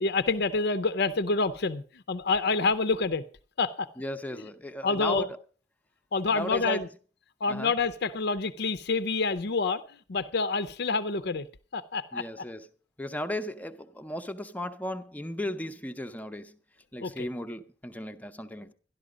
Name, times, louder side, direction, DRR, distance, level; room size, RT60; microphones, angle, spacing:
voice 1, 0.0-3.2 3.6-3.9 4.4-4.5 4.8-5.3 6.1-6.9 7.4-11.5 11.7-12.3 17.0-17.3, left 4 dB, 60° left, 0.6 m, -27 dB
voice 2, 4.0-5.4 6.3-6.8 7.5-7.7 12.1-12.7 13.0-16.6 16.9-18.7, left 1 dB, 10° left, 0.7 m, -35 dB
12.0 x 11.5 x 5.0 m
head